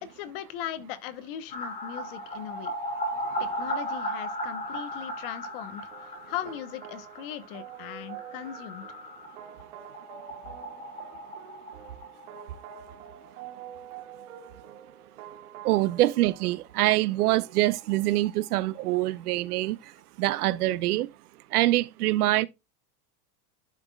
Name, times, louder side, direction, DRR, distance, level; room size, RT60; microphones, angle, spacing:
voice 1, 0.0-2.7 3.4-8.8, left 11 dB, 40° left, 1.0 m, -39 dB
sound 1, 1.5-13.1 13.4-13.5 13.8-13.9 16.9-17.0 17.2-17.3 17.6-19.3 19.6-19.7, equal, 15° left, 2.3 m, -37 dB
sound 2, 5.9-17.5, right 10 dB, 60° right, 2.0 m, -47 dB
voice 2, 15.6-19.9 20.2-21.1 21.5-22.5, right 16 dB, 80° right, 0.8 m, -25 dB
11.5 x 6.0 x 2.3 m
supercardioid pair, 175°, 45 cm